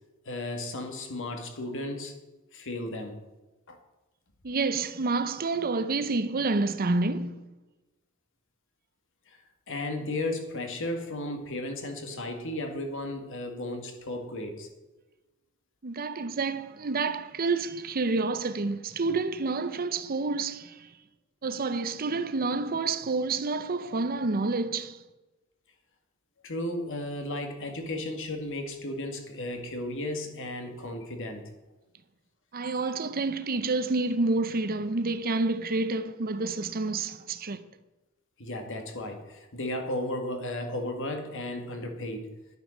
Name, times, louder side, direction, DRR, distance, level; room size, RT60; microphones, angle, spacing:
voice 1, 0.3-2.1 2.5-3.2 3.7-3.8 9.7-14.7 26.4-31.4 38.4-42.3, left 1 dB, 60° left, 2.0 m, -34 dB
voice 2, 4.4-7.3 15.8-20.9 21.4-25.0 32.5-37.6, right 3 dB, 40° right, 0.7 m, -29 dB
10.0 x 9.2 x 6.5 m
head